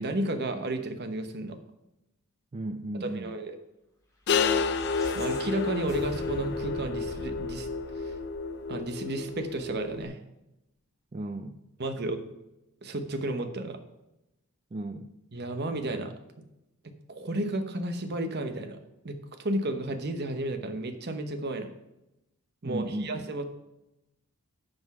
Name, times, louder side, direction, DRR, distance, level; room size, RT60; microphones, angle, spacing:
voice 1, 0.0-1.6 3.0-3.6 5.1-7.7 8.0-8.1 8.7-10.2 11.8-12.3 12.8-13.8 15.3-16.1 17.1-18.8 19.0-21.7 22.6-23.5, right 1 dB, 45° right, 8 dB, 1.0 m, -32 dB
voice 2, 2.5-3.4 11.1-11.6 14.7-15.1 22.6-23.4, right 1 dB, 30° right, 7 dB, 0.4 m, -35 dB
sound 1, 4.3-10.0, left 5 dB, 50° left, 0.5 m, -30 dB
sound 2, 4.4-8.7, left 1 dB, 15° left, 2.3 m, -45 dB
9.5 x 5.3 x 6.0 m, 0.90 s
head